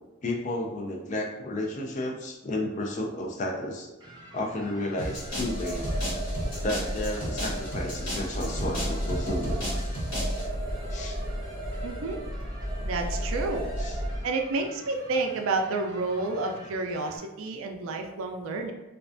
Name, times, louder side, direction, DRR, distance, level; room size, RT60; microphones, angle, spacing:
voice 1, 0.2-3.9 4.3-5.9 6.6-9.6 10.9-11.2 13.8-14.0, left 1 dB, 35° left, 1 dB, 0.3 m, -32 dB
sound 1, 4.0-17.2, right 1 dB, 20° right, 0.6 m, -49 dB
sound 2, 5.0-10.5, equal, 85° left, 1.2 m, -35 dB
sound 3, 5.1-14.2, equal, 55° left, 1.2 m, -33 dB
voice 2, 11.8-12.2 12.8-13.7 14.2-18.7, right 3 dB, 70° right, 4 dB, 0.3 m, -30 dB
2.4 x 2.2 x 2.4 m, 1.1 s
head